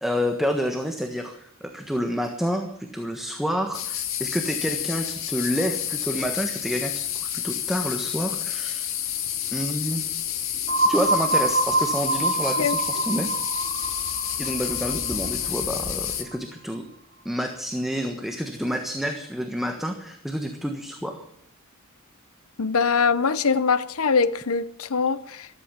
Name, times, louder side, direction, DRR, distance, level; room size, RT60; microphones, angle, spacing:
voice 1, 0.0-8.9 9.5-10.0 10.9-13.3 14.4-16.9 17.2-21.2, equal, ahead, 1.3 m, -28 dB
sound 1, 3.7-16.2, left 10 dB, 65° left, 2.0 m, -29 dB
sound 2, 10.7-16.4, right 2 dB, 55° right, 2.5 m, -26 dB
voice 2, 22.6-25.5, left 5 dB, 85° left, 0.9 m, -23 dB
14.0 x 13.5 x 7.4 m
head